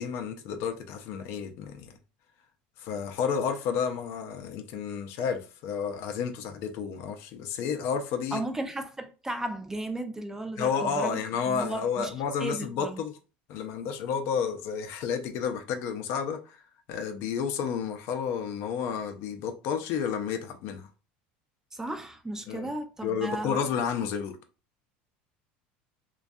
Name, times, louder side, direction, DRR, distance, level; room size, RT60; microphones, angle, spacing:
voice 1, 0.0-1.9 2.8-8.4 10.6-13.1 13.5-16.6 16.9-20.9 22.5-22.7 23.0-24.4, left 6 dB, 60° left, 0.4 m, -31 dB
voice 2, 8.3-11.2 11.5-12.1 12.4-13.0 21.7-23.6, right 1 dB, 10° right, 0.4 m, -35 dB
2.5 x 2.2 x 2.2 m
supercardioid pair, 100°, 5 cm